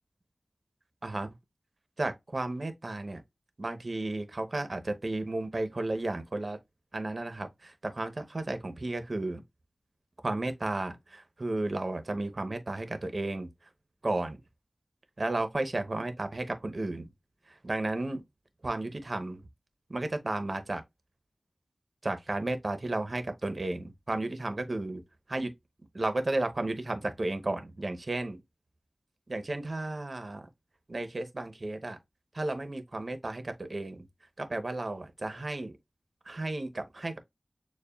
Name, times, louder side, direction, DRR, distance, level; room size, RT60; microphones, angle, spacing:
voice 1, 2.0-3.2 3.6-6.6 6.9-9.4 10.2-13.7 14.0-14.4 15.2-17.1 17.5-18.2 18.6-19.4 19.9-20.8 22.0-25.0 25.3-25.5 25.9-28.4 29.3-30.5 30.9-32.0 32.3-34.1 34.4-35.8 36.2-37.2, right 2 dB, 55° right, 0.8 m, -33 dB
6.8 x 2.3 x 2.3 m
wide cardioid pair, 70°, 0 cm